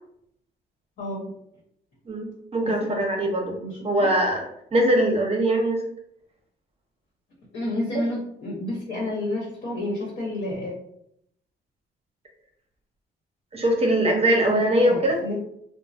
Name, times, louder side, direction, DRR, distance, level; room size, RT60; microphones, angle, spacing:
voice 1, 1.0-1.3 2.6-2.9 3.6-4.1 7.5-10.7 14.4-15.4, left 1 dB, 60° left, -4 dB, 1.1 m, -30 dB
voice 2, 2.1-3.6 3.8-4.4 4.7-5.8 13.5-15.2, right 1 dB, 30° right, 1 dB, 0.8 m, -22 dB
3.0 x 2.1 x 2.6 m, 0.72 s
cardioid pair, 90°, 20 cm